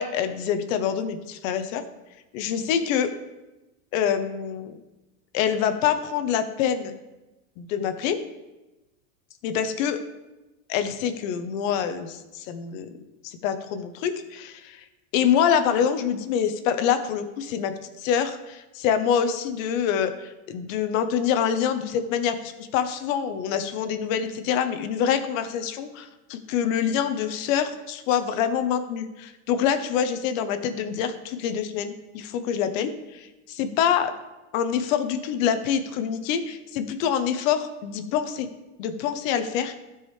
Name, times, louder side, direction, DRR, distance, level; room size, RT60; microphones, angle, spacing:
voice 1, 0.0-1.8 2.3-3.1 3.9-4.8 5.3-7.0 7.6-8.2 9.4-10.0 10.7-12.9 13.2-14.8 15.1-34.1 34.5-38.5 38.8-39.8, left 8 dB, 60° left, 9 dB, 0.9 m, -26 dB
13.0 x 4.8 x 3.2 m, 1.0 s
supercardioid pair, 120°, 44 cm